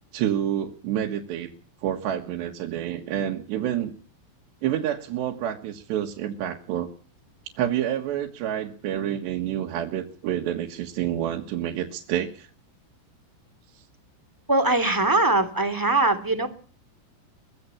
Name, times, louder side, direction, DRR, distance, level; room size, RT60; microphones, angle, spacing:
voice 1, 0.1-1.5 1.8-3.9 4.6-6.9 7.6-12.5 13.8-13.9, right 11 dB, 80° right, 2 dB, 3.9 m, -28 dB
voice 2, 14.5-16.5, right 2 dB, 5° right, 8 dB, 2.4 m, -21 dB
24.0 x 16.5 x 7.3 m, 0.43 s
omnidirectional pair, 4.9 m